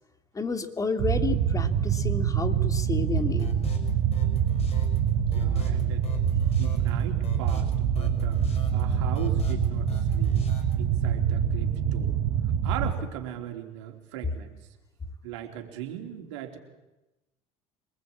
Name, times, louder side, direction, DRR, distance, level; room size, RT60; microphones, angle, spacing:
voice 1, 0.3-3.5, left 3 dB, 25° left, 7 dB, 2.8 m, -31 dB
sound 1, 1.0-12.9, right 8 dB, 70° right, 3.0 m, -25 dB
sound 2, 3.2-10.7, left 4 dB, 45° left, 6.0 m, -39 dB
voice 2, 5.3-6.1 6.4-8.4 8.7-10.4 10.8-12.2 12.6-14.5 15.2-16.6, right 11 dB, 85° right, 3 dB, 3.6 m, -39 dB
25.5 x 20.5 x 8.7 m, 1.0 s
supercardioid pair, 80°, 15 cm